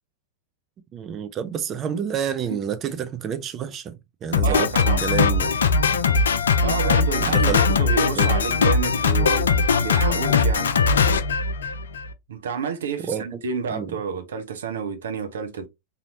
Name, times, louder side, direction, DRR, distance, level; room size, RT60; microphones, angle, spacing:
voice 1, 0.9-3.9 4.2-4.7 5.0-5.5 7.2-7.6 8.2-8.3 13.1-13.2 13.7-13.9, right 8 dB, 30° right, 0.6 m, -28 dB
Drum kit, 4.3-12.1, left 4 dB, 65° left, 0.4 m, -20 dB
voice 2, 4.4-5.1 6.6-9.5 9.8-10.7 12.3-15.7, right 6 dB, 65° right, 0.8 m, -29 dB
4.1 x 2.7 x 3.0 m
figure-of-eight pair, 90°, 0 cm